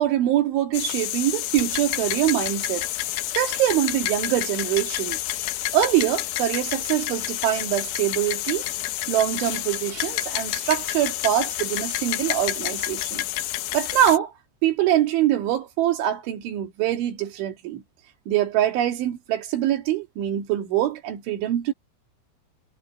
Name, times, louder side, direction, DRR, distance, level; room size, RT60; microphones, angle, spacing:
voice 1, 0.0-5.2 5.7-8.7 9.1-13.3 13.7-14.3 14.6-17.8 18.3-21.7, right 12 dB, 85° right, 4.8 m, -24 dB
sound 1, 0.7-14.2, left 15 dB, 75° left, 3.1 m, -29 dB
omnidirectional pair, 5.3 m